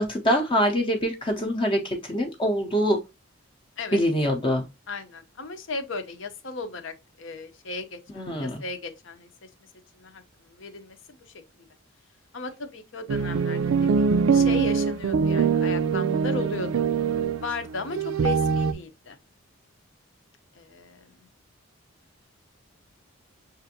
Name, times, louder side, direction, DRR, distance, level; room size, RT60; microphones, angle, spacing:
voice 1, 0.0-1.8 2.1-3.0 3.9-4.6 8.2-8.6, equal, 25° left, 0.6 m, -24 dB
voice 2, 4.9-9.3 10.0-10.2 10.5-11.2 12.3-16.8 17.4-19.2 20.6-21.0, left 3 dB, 65° left, 0.7 m, -36 dB
sound 1, 13.1-18.7, right 5 dB, 80° right, 0.4 m, -23 dB
6.5 x 2.5 x 2.7 m
head